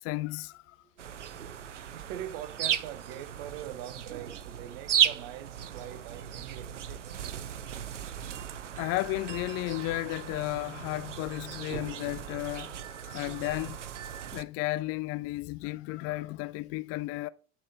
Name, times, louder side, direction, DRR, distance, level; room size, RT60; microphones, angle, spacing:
voice 1, 0.0-0.8 8.7-13.8 14.3-17.3, left 19 dB, 45° left, 0.4 m, -33 dB
voice 2, 0.9-7.2, right 11 dB, 60° right, 1.0 m, -43 dB
sound 1, 1.0-14.4, right 9 dB, 85° right, 0.5 m, -35 dB
8.7 x 5.5 x 2.7 m
figure-of-eight pair, 65°, 35 cm